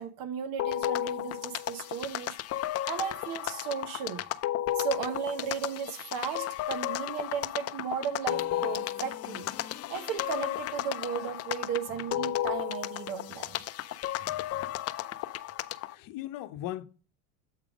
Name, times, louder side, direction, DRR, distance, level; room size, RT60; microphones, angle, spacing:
voice 1, 0.0-2.3 2.8-4.3 4.8-9.5 9.9-13.6, right 7 dB, 70° right, 1.2 m, -35 dB
sound 1, 0.6-16.0, left 13 dB, 45° left, 0.5 m, -34 dB
voice 2, 14.2-14.8 15.9-16.8, left 14 dB, 65° left, 0.9 m, -39 dB
8.0 x 3.6 x 4.9 m
supercardioid pair, 105°, 35 cm